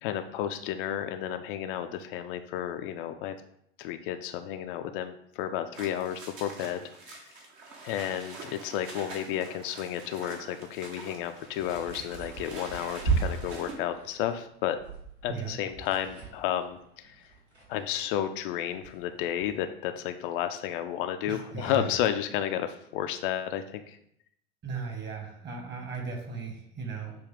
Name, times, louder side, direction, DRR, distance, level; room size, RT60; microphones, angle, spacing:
voice 1, 0.0-3.4 3.8-7.3 7.8-14.8 15.2-17.3 17.7-24.0, left 10 dB, 55° left, 8 dB, 0.4 m, -32 dB
sound 1, 5.7-13.7, right 3 dB, 55° right, 1.2 m, -45 dB
sound 2, 11.2-18.2 18.5-19.5, right 4 dB, 85° right, 1.5 m, -36 dB
voice 2, 21.3-21.9 24.6-27.2, right 5 dB, 30° right, 2 dB, 1.4 m, -36 dB
6.6 x 2.3 x 3.5 m, 0.72 s
figure-of-eight pair, 70°, 32 cm